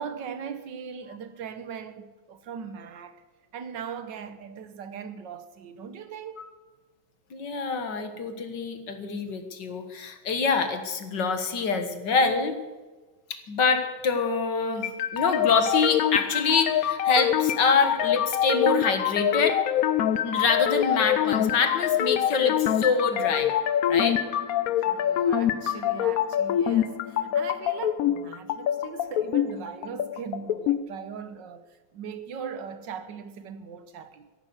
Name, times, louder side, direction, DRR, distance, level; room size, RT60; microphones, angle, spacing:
voice 1, 0.0-3.2 3.5-6.4 14.8-14.9 24.8-31.7 31.9-34.3, right 7 dB, 65° right, 1.7 m, -39 dB
voice 2, 7.3-12.6 13.5-19.6 20.2-23.5 23.9-24.2, left 4 dB, 60° left, 2.1 m, -25 dB
sound 1, 14.8-30.8, left 10 dB, 75° left, 0.8 m, -25 dB
15.0 x 11.0 x 7.9 m
omnidirectional pair, 2.3 m